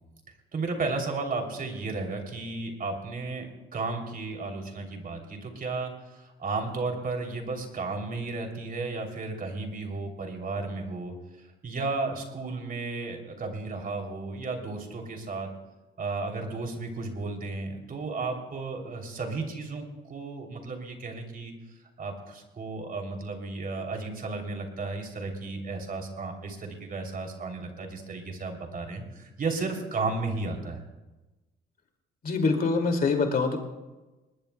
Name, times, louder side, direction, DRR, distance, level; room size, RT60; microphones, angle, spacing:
voice 1, 0.5-3.5 3.7-11.1 11.6-15.5 16.0-21.5 22.0-30.8, right 3 dB, 45° right, 3 dB, 3.1 m, -33 dB
voice 2, 32.2-33.6, left 4 dB, 50° left, 4 dB, 2.4 m, -24 dB
20.5 x 20.0 x 2.3 m, 1.1 s
cardioid pair, 90°, 20 cm